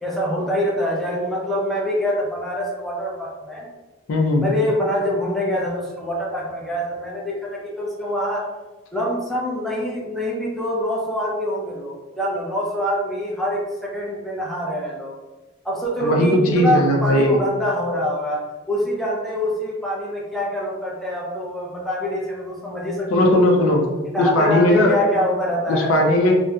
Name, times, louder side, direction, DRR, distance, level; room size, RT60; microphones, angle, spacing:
voice 1, 0.0-3.7 4.4-8.4 8.9-15.1 15.6-18.4 18.7-23.4 24.1-25.9, equal, ahead, -5 dB, 0.5 m, -25 dB
voice 2, 4.1-4.5 16.0-17.4 23.1-23.9 24.2-25.0 25.7-26.3, left 1 dB, 85° left, 1 dB, 0.5 m, -17 dB
2.7 x 2.1 x 2.3 m, 1.2 s
head